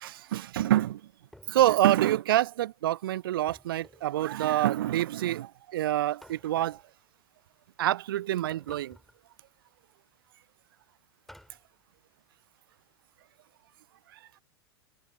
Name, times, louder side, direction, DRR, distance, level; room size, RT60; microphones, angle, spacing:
voice 1, 0.0-1.0 1.5-6.8 7.8-9.0 14.1-14.2, right 13 dB, 60° right, 0.4 m, -26 dB
sound 1, 1.3-2.0 3.5-4.2 6.2-6.9 8.5-9.2 11.3-11.7, equal, ahead, 4.4 m, -54 dB
figure-of-eight pair, 90°, 13 cm